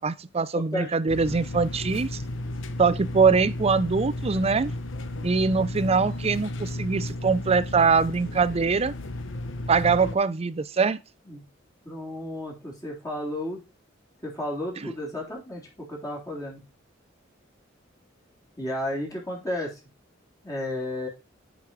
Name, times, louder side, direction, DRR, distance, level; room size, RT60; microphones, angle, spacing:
voice 1, 0.0-2.2 2.8-4.7 5.2-8.9 9.7-11.0 14.8-14.9, right 5 dB, 30° right, 0.5 m, -23 dB
sound 1, 1.1-10.2, left 1 dB, 75° left, 0.9 m, -33 dB
voice 2, 11.9-13.6 14.2-16.6 18.6-19.7 20.4-21.1, left 1 dB, 20° left, 3.4 m, -33 dB
7.4 x 5.4 x 4.6 m
head